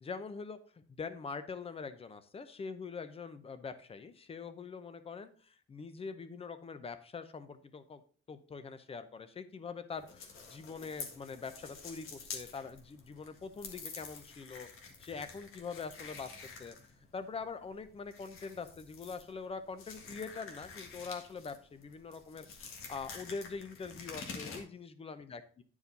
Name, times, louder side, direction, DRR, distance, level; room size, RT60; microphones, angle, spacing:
voice 1, 0.0-8.0 8.3-16.3 16.6-16.8 17.1-25.4, left 5 dB, 30° left, 11 dB, 0.7 m, -44 dB
sound 1, 9.9-24.6, left 5 dB, 85° left, 1.7 m, -48 dB
10.5 x 4.8 x 4.0 m, 0.42 s
wide cardioid pair, 170°, 21 cm